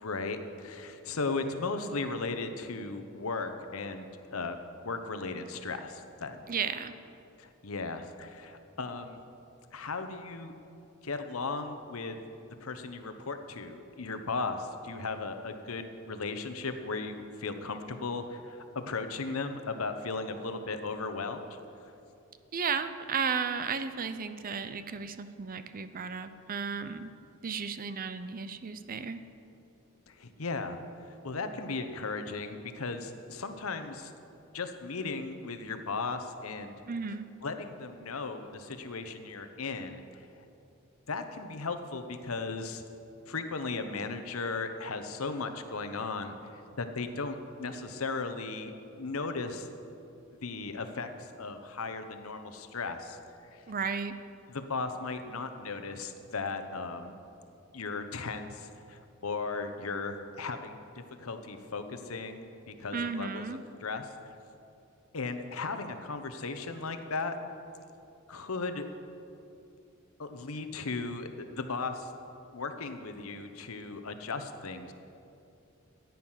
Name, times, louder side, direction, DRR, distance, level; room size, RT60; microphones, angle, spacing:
voice 1, 0.0-4.6 4.8-6.5 7.4-9.2 9.7-10.5 11.0-12.2 12.6-21.6 30.1-30.8 31.2-34.1 34.5-36.7 37.4-40.0 40.4-40.5 41.1-42.8 43.3-49.7 50.4-53.2 53.5-53.6 54.5-57.2 57.7-60.8 61.2-63.5 63.8-64.1 65.1-67.4 68.3-68.9 70.2-72.1 72.5-74.9, left 3 dB, 80° left, 8 dB, 1.0 m, -36 dB
voice 2, 6.5-6.9 22.5-27.1 27.4-29.2 36.9-37.3 53.7-54.1 62.9-63.6, right 6 dB, 40° right, 11 dB, 0.6 m, -34 dB
14.5 x 9.5 x 5.7 m, 2.7 s
head